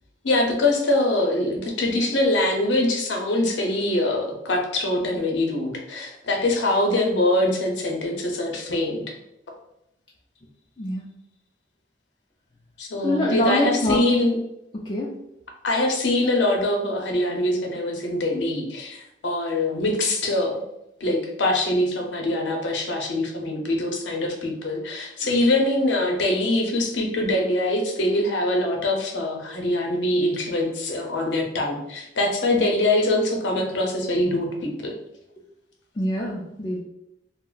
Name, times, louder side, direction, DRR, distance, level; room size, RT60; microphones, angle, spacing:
voice 1, 0.2-9.0 12.8-14.4 15.6-20.6 21.0-34.9, left 1 dB, 75° left, 1 dB, 0.7 m, -23 dB
voice 2, 10.8-11.1 13.0-14.0 14.9-15.1 36.0-36.8, left 1 dB, 25° left, -4 dB, 0.3 m, -24 dB
2.4 x 2.1 x 3.7 m, 0.82 s
head